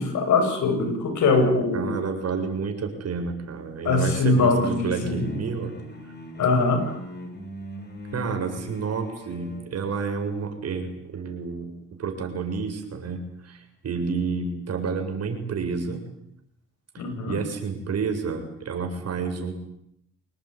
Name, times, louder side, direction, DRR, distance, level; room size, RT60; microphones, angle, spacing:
voice 1, 0.0-1.9 3.8-5.2 6.4-7.0 17.0-17.4, left 3 dB, 75° left, 7 dB, 8.0 m, -22 dB
voice 2, 1.7-5.7 8.1-16.0 16.9-19.5, right 5 dB, 55° right, 4 dB, 7.5 m, -30 dB
sound 1, 3.9-9.8, left 1 dB, 35° left, 7.4 m, -40 dB
27.0 x 20.0 x 9.9 m, 0.75 s
cardioid pair, 90°, 30 cm